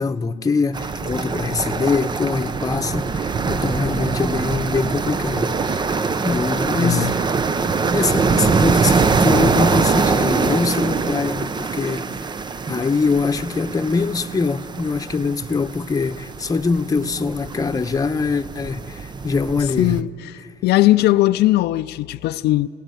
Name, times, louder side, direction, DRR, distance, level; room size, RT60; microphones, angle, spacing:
voice 1, 0.0-7.1 7.9-12.3 12.7-20.0, left 4 dB, 20° left, 1.0 m, -23 dB
sound 1, 0.7-20.0, right 4 dB, 25° right, 0.7 m, -23 dB
voice 2, 6.8-7.1 19.6-22.7, left 16 dB, 75° left, 0.6 m, -19 dB
28.0 x 17.5 x 9.2 m
cardioid pair, 110°, 17 cm